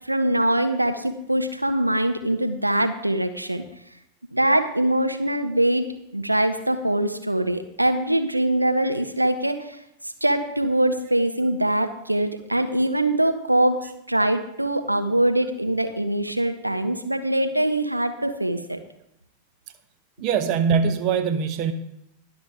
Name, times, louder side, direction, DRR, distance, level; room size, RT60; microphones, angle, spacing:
voice 1, 0.1-3.6 4.3-5.8 6.1-9.8 10.2-18.8, right 1 dB, 85° right, 8 dB, 0.8 m, -23 dB
voice 2, 20.2-21.7, right 6 dB, 40° right, 10 dB, 1.0 m, -22 dB
21.0 x 7.1 x 3.6 m, 0.81 s
figure-of-eight pair, 90°, 0 cm